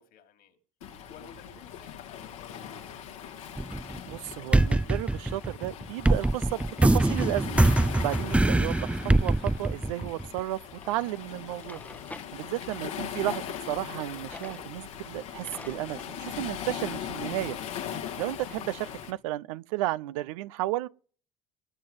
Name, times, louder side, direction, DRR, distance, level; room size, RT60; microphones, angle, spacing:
voice 1, 0.0-2.9 11.3-11.6, left 8 dB, 65° left, 3.2 m, -54 dB
Waves surf, 0.8-19.1, left 9 dB, 85° left, 2.3 m, -40 dB
sound 1, 3.6-4.2 4.5-10.4, right 2 dB, 5° right, 0.5 m, -23 dB
voice 2, 4.1-7.6 8.0-10.6 10.9-11.8 12.3-17.6 18.2-20.9, right 16 dB, 80° right, 0.6 m, -33 dB
Drawer open or close, 10.8-10.9 11.4-12.3 13.9-14.7 15.0-15.1 15.4-16.1, left 2 dB, 10° left, 0.9 m, -46 dB
20.5 x 7.7 x 5.4 m
hypercardioid pair, 60°, 17 cm